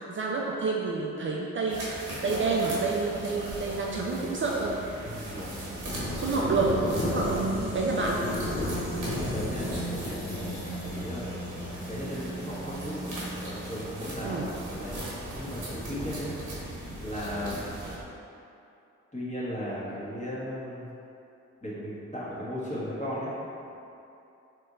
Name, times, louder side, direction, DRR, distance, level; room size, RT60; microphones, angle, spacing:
voice 1, 0.0-4.8 6.2-6.8 7.1-8.2 14.2-14.5, right 3 dB, 40° right, -2 dB, 0.4 m, -29 dB
sound 1, 1.7-18.0, right 1 dB, 75° right, 1.0 m, -39 dB
sound 2, 4.7-5.0 5.3-18.0, left 1 dB, 45° left, 1.0 m, -37 dB
voice 2, 5.0-5.8 6.3-6.6 7.0-7.4 9.0-11.3 11.9-13.1 13.4-14.5 14.8-15.0 15.3-16.4 17.0-17.6 19.1-20.8 21.6-23.3, equal, 25° left, -8 dB, 1.3 m, -36 dB
sound 3, 6.9-12.1, right 1 dB, 5° right, 1.0 m, -38 dB
4.1 x 3.1 x 2.5 m, 2.7 s
supercardioid pair, 50°, 31 cm